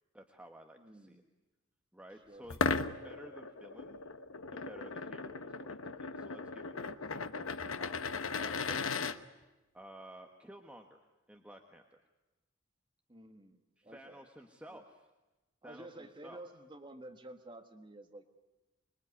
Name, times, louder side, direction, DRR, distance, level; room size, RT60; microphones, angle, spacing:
voice 1, 0.1-1.2 1.9-2.6 2.9-4.0 4.5-8.1 8.3-9.2 9.7-11.0 11.3-12.0 13.8-15.1 15.6-16.4, right 1 dB, 5° right, 3 dB, 1.4 m, -54 dB
voice 2, 0.8-1.2 2.3-2.5 13.1-14.2 14.7-14.8 15.6-18.3, right 1 dB, 25° right, 6 dB, 1.5 m, -51 dB
sound 1, 2.5-9.2, left 4 dB, 85° left, 1.1 m, -37 dB
25.0 x 22.5 x 9.7 m, 1.1 s
head